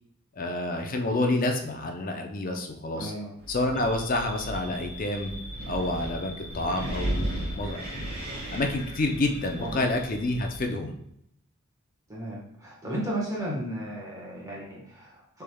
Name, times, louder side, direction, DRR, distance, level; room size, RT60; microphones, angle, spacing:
voice 1, 0.4-3.1 3.5-5.3 5.7-8.1 8.5-11.0, left 2 dB, 40° left, 4 dB, 0.5 m, -28 dB
voice 2, 2.9-3.3 3.8-3.9 9.6-9.9 12.1-15.4, right 1 dB, 15° right, -5 dB, 1.2 m, -34 dB
Wind, 3.4-10.7, right 1 dB, 45° right, 1.0 m, -36 dB
sound 1, 3.7-10.6, left 1 dB, ahead, 0.9 m, -44 dB
6.6 x 3.4 x 2.2 m, 0.75 s
head